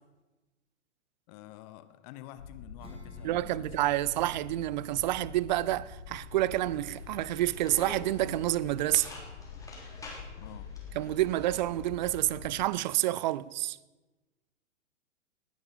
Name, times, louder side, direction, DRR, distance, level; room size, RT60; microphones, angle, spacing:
voice 1, 1.3-3.8 10.4-10.7, left 14 dB, 35° left, 1.0 m, -49 dB
sound 1, 2.4-12.7, left 5 dB, 60° left, 1.3 m, -46 dB
Acoustic guitar / Strum, 2.8-8.8, right 1 dB, 15° right, 2.7 m, -59 dB
voice 2, 3.2-9.1 11.0-13.8, right 15 dB, 40° right, 0.5 m, -29 dB
sound 2, 6.9-11.8, left 2 dB, 10° left, 3.4 m, -49 dB
19.0 x 10.5 x 5.4 m
figure-of-eight pair, 110°, 37 cm